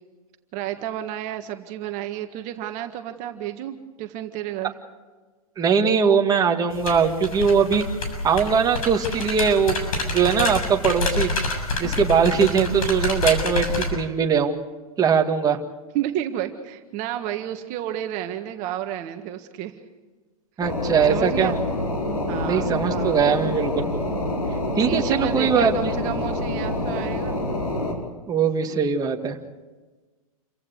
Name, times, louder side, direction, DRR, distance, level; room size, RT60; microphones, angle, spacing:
voice 1, 0.5-4.7 12.7-13.0 15.9-19.8 21.1-21.6 22.3-23.3 24.9-27.4 28.7-29.0, right 11 dB, 40° right, 6 dB, 1.7 m, -31 dB
voice 2, 5.6-7.8 8.2-11.3 11.8-14.6 15.0-15.6 20.6-21.5 22.4-23.9 24.8-25.9 28.3-29.4, right 6 dB, 20° right, 3 dB, 2.0 m, -21 dB
sound 1, 6.7-13.9, left 2 dB, 70° left, 6.9 m, -27 dB
sound 2, 20.6-27.9, left 1 dB, 90° left, 5.5 m, -27 dB
28.5 x 16.0 x 8.1 m, 1.3 s
hypercardioid pair, 110°, 19 cm